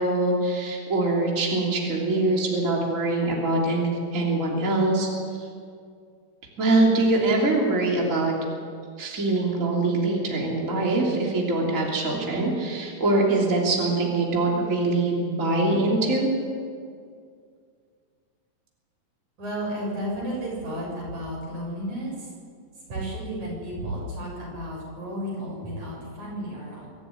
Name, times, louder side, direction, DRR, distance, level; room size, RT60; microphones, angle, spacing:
voice 1, 0.0-5.1 5.3-5.5 6.6-8.3 9.0-16.3, right 2 dB, 25° right, -2 dB, 3.3 m, -23 dB
voice 2, 19.4-22.1 22.9-26.9, equal, 90° right, -4 dB, 8.8 m, -32 dB
23.5 x 13.0 x 9.5 m, 2.2 s
omnidirectional pair, 3.3 m